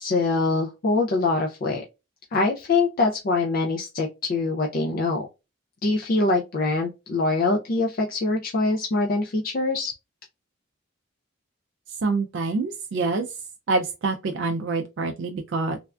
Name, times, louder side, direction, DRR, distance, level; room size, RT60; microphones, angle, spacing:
voice 1, 0.0-1.8 2.3-5.3 5.8-9.9, left 3 dB, 45° left, 0.4 m, -24 dB
voice 2, 12.0-13.3 13.7-15.8, right 3 dB, 60° right, 0.4 m, -26 dB
3.3 x 2.2 x 2.4 m
head